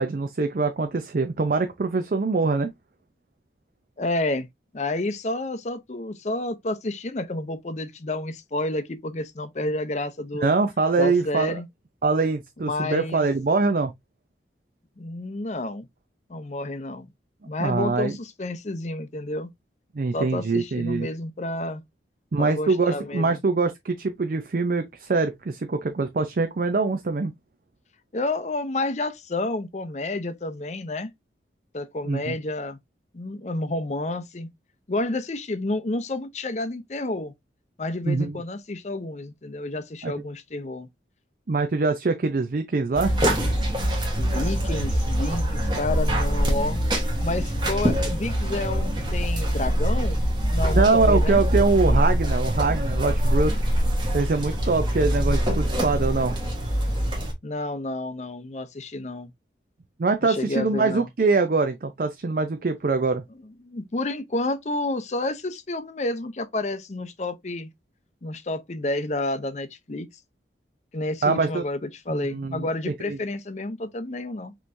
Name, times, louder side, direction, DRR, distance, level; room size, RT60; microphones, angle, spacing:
voice 1, 0.0-2.7 10.4-11.6 12.0-13.9 17.6-18.2 19.9-21.1 22.3-27.3 32.1-32.4 38.0-38.4 40.0-40.1 41.5-43.1 50.7-53.5 54.1-56.4 60.0-63.2 71.2-71.6 72.1-73.2, right 3 dB, 50° right, 0.4 m, -23 dB
voice 2, 4.0-4.5 4.7-10.5 11.0-11.7 12.7-13.2 15.0-15.9 16.3-17.1 17.4-19.5 20.1-21.8 22.4-23.4 28.1-31.1 31.7-32.8 33.1-34.5 34.9-37.3 37.8-40.9 44.2-46.8 47.2-50.2 50.5-51.4 57.4-59.3 60.2-61.1 63.6-67.7 68.2-70.1 70.9-74.5, left 2 dB, 40° left, 0.6 m, -30 dB
sound 1, 42.9-57.3, equal, 25° right, 1.3 m, -24 dB
5.4 x 3.0 x 2.6 m
head